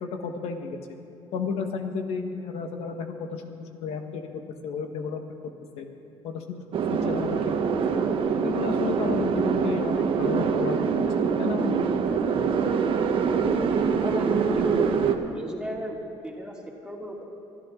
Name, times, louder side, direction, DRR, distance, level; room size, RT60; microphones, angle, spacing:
voice 1, 0.0-0.8 1.3-4.3 4.6-5.2 5.8-5.9 6.2-8.0 8.4-11.0 11.4-11.8 13.4-13.5, left 5 dB, 80° left, 5 dB, 1.6 m, -32 dB
sound 1, 6.7-15.2, right 6 dB, 55° right, 1.2 m, -24 dB
voice 2, 14.0-15.1 15.3-16.0 16.2-17.2, right 1 dB, 5° right, -2 dB, 2.7 m, -34 dB
23.5 x 13.5 x 3.9 m, 2.9 s
cardioid pair, 125°, 10 cm